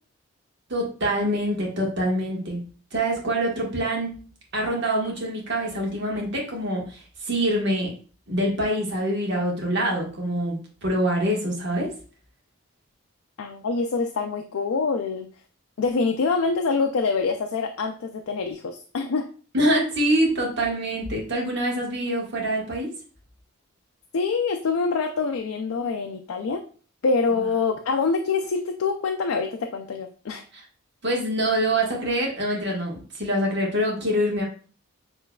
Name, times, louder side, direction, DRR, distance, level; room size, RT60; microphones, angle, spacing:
voice 1, 0.7-2.6 2.9-4.2 4.5-7.9 8.3-11.9 19.5-22.9 30.5-30.6 31.0-34.4, right 1 dB, 55° right, -1 dB, 1.4 m, -25 dB
voice 2, 13.4-15.3 15.8-19.3 24.1-26.6 27.0-30.4, left 4 dB, 80° left, 5 dB, 0.4 m, -25 dB
7.0 x 3.1 x 2.3 m, 0.40 s
head